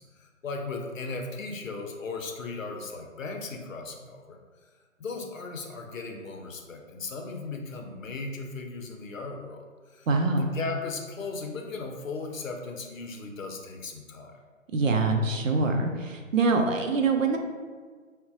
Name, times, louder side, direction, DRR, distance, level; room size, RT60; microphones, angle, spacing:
voice 1, 0.0-4.4 5.0-9.6 9.9-10.1 10.4-14.4, left 3 dB, 75° left, 3 dB, 0.6 m, -37 dB
voice 2, 10.1-10.6 14.7-17.4, right 3 dB, 75° right, 4 dB, 0.5 m, -24 dB
3.9 x 2.1 x 2.5 m, 1.5 s
figure-of-eight pair, 145°, 40 cm